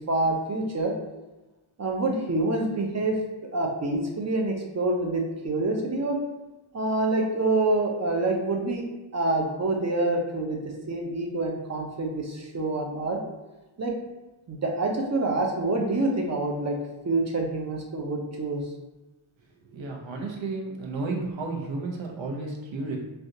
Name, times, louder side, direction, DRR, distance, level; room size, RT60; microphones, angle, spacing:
voice 1, 0.1-0.9 1.8-3.2 3.5-6.2 6.7-8.8 9.1-13.2 13.8-13.9 14.5-16.8 17.0-18.6, right 2 dB, 35° right, 1 dB, 0.6 m, -26 dB
voice 2, 19.7-23.0, right 3 dB, 70° right, 0 dB, 0.8 m, -32 dB
3.3 x 2.4 x 2.7 m, 1.1 s
wide cardioid pair, 75°, 48 cm